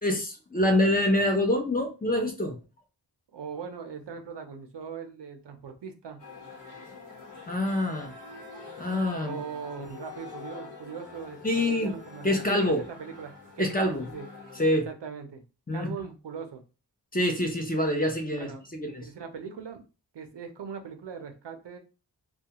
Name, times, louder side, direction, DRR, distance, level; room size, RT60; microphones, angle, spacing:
voice 1, 0.0-2.6 7.5-8.1 8.8-9.4 11.4-11.9 12.2-12.8 13.6-14.0 14.6-14.9 15.7-15.9 17.1-19.0, left 1 dB, 20° left, 3 dB, 0.6 m, -26 dB
voice 2, 3.3-6.2 9.3-14.3 14.9-15.4 15.7-16.6 18.4-18.6 19.0-19.8 20.1-21.8, right 6 dB, 80° right, 6 dB, 0.6 m, -40 dB
sound 1, 6.2-14.9, left 4 dB, 50° left, 1.0 m, -45 dB
2.3 x 2.2 x 2.8 m, 0.32 s
wide cardioid pair, 80°, 42 cm